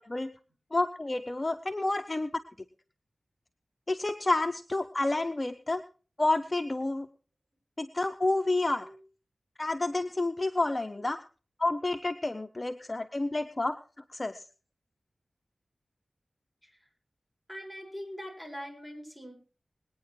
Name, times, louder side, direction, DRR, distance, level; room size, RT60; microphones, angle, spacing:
voice 1, 0.7-2.3 3.9-5.8 6.2-7.1 7.8-8.8 9.6-11.2 11.6-13.8 14.1-14.4, left 2 dB, 30° left, 8 dB, 0.8 m, -29 dB
voice 2, 17.5-19.3, equal, ahead, 0 dB, 7.1 m, -42 dB
20.0 x 9.5 x 4.8 m, 0.38 s
wide cardioid pair, 65°, 0 cm